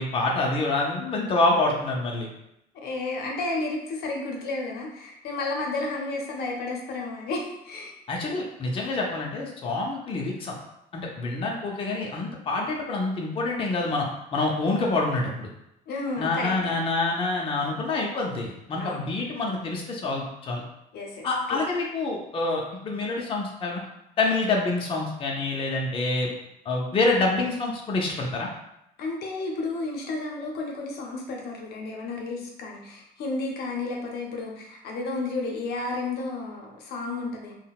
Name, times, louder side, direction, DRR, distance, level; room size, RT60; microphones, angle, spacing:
voice 1, 0.0-2.3 8.1-10.5 10.9-15.5 16.2-20.6 21.2-23.8 24.2-26.3 26.7-28.5, left 2 dB, 35° left, -1 dB, 0.5 m, -27 dB
voice 2, 2.7-7.9 15.9-16.5 18.8-19.1 20.9-21.6 29.0-37.5, left 3 dB, 70° left, 0 dB, 0.6 m, -32 dB
3.8 x 2.1 x 2.3 m, 0.83 s
cardioid pair, 110°, 17 cm